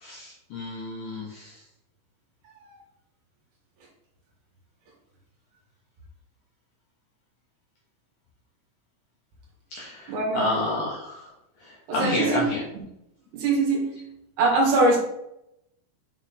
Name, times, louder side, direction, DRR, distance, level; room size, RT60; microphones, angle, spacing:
voice 1, 0.0-1.6 9.7-11.3 11.6-12.6, left 2 dB, 85° left, -3 dB, 1.8 m, -30 dB
voice 2, 10.1-10.7 11.9-12.5 13.3-14.0 14.4-15.0, right 2 dB, 70° right, -2 dB, 3.8 m, -23 dB
7.6 x 4.5 x 4.2 m, 0.82 s
omnidirectional pair, 5.3 m